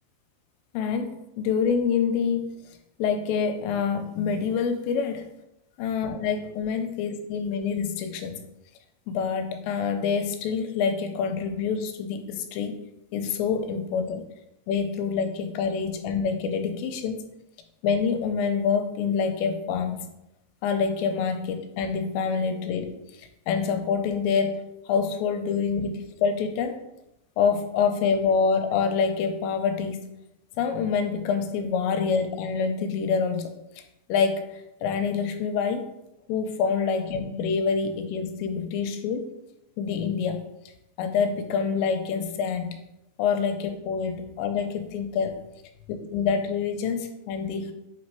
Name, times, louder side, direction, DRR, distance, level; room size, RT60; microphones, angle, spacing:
voice 1, 0.7-2.6 3.0-5.3 5.8-8.4 9.1-12.8 13.1-14.3 14.7-17.3 17.8-20.1 20.6-26.8 27.4-30.1 30.6-33.5 34.1-35.9 36.3-39.3 39.8-40.5 41.0-42.8 43.2-45.4 46.1-47.7, left 6 dB, 90° left, 6 dB, 2.9 m, -26 dB
8.1 x 4.3 x 4.6 m, 0.89 s
omnidirectional pair, 5.1 m